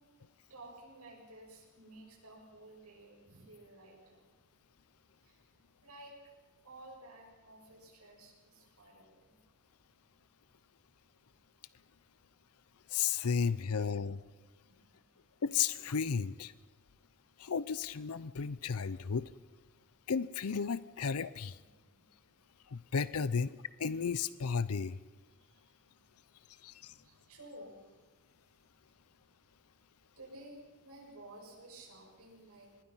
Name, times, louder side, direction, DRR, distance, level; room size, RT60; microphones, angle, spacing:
voice 1, 0.4-4.3 5.2-5.5 5.8-6.2 6.6-9.3 13.7-13.9 14.7-15.0 21.6-22.1 25.3-26.0 26.5-28.0 30.2-32.7, right 1 dB, 80° right, 0 dB, 7.0 m, -54 dB
voice 2, 12.9-14.2 15.4-16.5 17.4-19.3 20.1-21.6 22.7-25.0 26.6-26.9, left 6 dB, 90° left, 17 dB, 0.6 m, -33 dB
25.5 x 21.0 x 5.7 m, 1.2 s
head